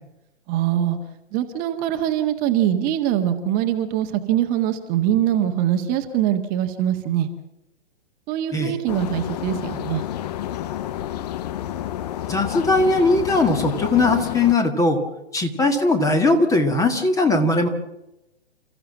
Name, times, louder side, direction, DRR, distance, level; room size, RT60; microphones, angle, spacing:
voice 1, 0.5-1.0 1.3-7.3 8.3-10.0, right 11 dB, 25° right, 6 dB, 1.6 m, -23 dB
sound 1, 8.9-14.5, left 12 dB, 35° left, 0.8 m, -30 dB
voice 2, 12.3-15.0 15.3-17.7, left 2 dB, 10° left, 6 dB, 1.8 m, -19 dB
29.5 x 15.0 x 7.5 m, 0.93 s
figure-of-eight pair, 125°, 35 cm